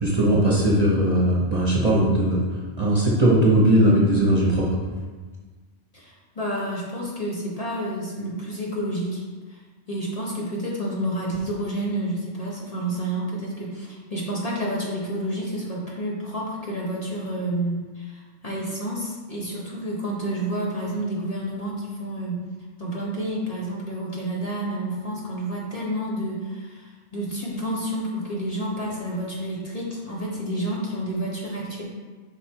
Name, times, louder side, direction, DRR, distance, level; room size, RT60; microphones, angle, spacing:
voice 1, 0.0-2.4 2.8-4.7, right 1 dB, 35° right, -4 dB, 1.1 m, -19 dB
voice 2, 5.9-9.2 9.5-9.6 9.9-22.4 22.8-31.8, right 1 dB, 35° left, -5 dB, 1.4 m, -29 dB
8.2 x 5.3 x 3.0 m, 1.4 s
omnidirectional pair, 1.2 m